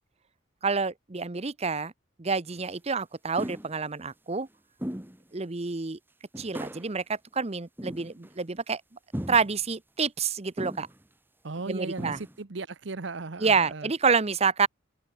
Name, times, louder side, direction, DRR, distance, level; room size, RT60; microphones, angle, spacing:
voice 1, 0.6-1.9 2.2-4.5 5.3-6.0 6.4-8.8 9.3-10.9 11.7-12.2 13.4-14.7, right 5 dB, 30° right, 0.8 m, -28 dB
sound 1, 2.5-2.6 3.4-3.8 4.8-5.2 5.6-5.7 6.3-6.9 7.8-8.4 9.1-9.6 10.6-11.0 11.6-11.7 12.0-12.4, equal, 10° right, 1.6 m, -37 dB
voice 2, 11.4-13.9, right 3 dB, 65° right, 0.9 m, -36 dB
head